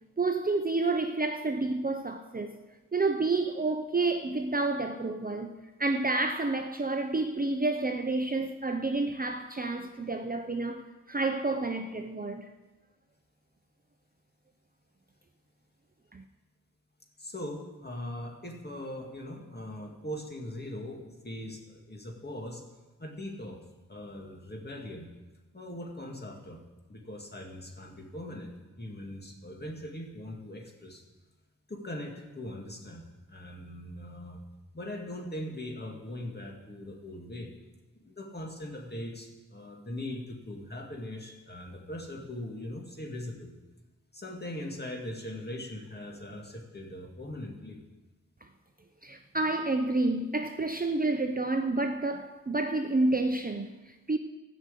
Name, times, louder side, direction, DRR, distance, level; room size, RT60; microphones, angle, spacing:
voice 1, 0.2-2.6 2.9-5.5 5.8-12.5 16.1-16.2 49.0-54.2, right 2 dB, 25° right, 0.6 m, -29 dB
voice 2, 17.2-22.6 23.0-23.6 23.9-25.1 25.5-26.6 26.9-31.0 31.7-34.4 34.7-37.5 38.0-43.5 44.1-47.8, left 1 dB, 30° left, 2.2 m, -40 dB
14.0 x 6.4 x 8.3 m
wide cardioid pair, 90°, 34 cm